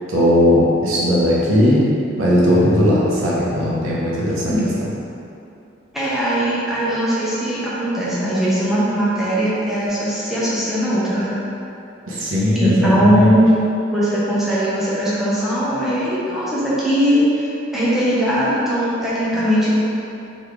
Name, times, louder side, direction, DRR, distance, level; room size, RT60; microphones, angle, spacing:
voice 1, 0.1-1.8 2.2-4.5 12.1-13.3 19.3-19.4, left 1 dB, 90° right, -6 dB, 1.0 m, -17 dB
voice 2, 5.9-11.3 12.6-13.6 13.9-17.5 17.7-19.8, equal, ahead, -10 dB, 0.8 m, -19 dB
4.2 x 3.5 x 3.3 m, 2.8 s
head